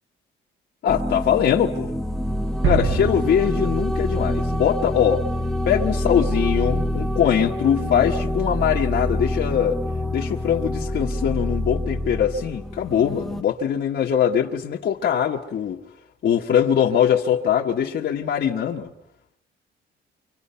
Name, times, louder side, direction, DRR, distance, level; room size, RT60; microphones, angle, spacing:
voice 1, 0.8-1.9 2.6-5.3 5.6-9.8 10.1-15.8 16.2-18.9, left 9 dB, 60° left, -1 dB, 1.5 m, -22 dB
sound 1, 0.9-13.4, left 1 dB, ahead, 1.0 m, -26 dB
sound 2, 2.6-4.5, right 5 dB, 75° right, 6.2 m, -27 dB
29.5 x 25.0 x 5.7 m, 0.84 s
cardioid pair, 90°, 20 cm